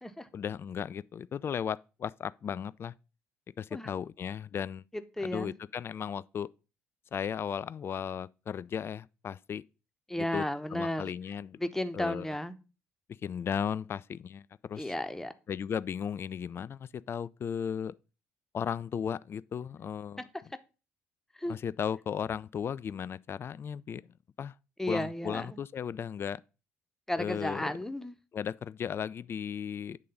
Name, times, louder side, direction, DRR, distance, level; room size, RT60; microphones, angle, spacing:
voice 1, 0.3-2.9 3.6-4.9 5.2-6.5 7.1-9.6 10.2-10.5 10.7-11.6 11.9-12.3 13.2-14.9 15.5-17.9 18.5-20.3 21.5-24.1 24.4-24.5 24.9-26.4 27.2-27.8 28.3-30.0, left 8 dB, 35° left, 0.3 m, -35 dB
voice 2, 5.2-5.5 10.1-11.1 11.6-12.5 14.8-15.3 21.4-21.6 24.8-25.6 27.1-28.1, left 1 dB, 5° left, 0.9 m, -33 dB
8.5 x 3.7 x 5.3 m
figure-of-eight pair, 50°, 7 cm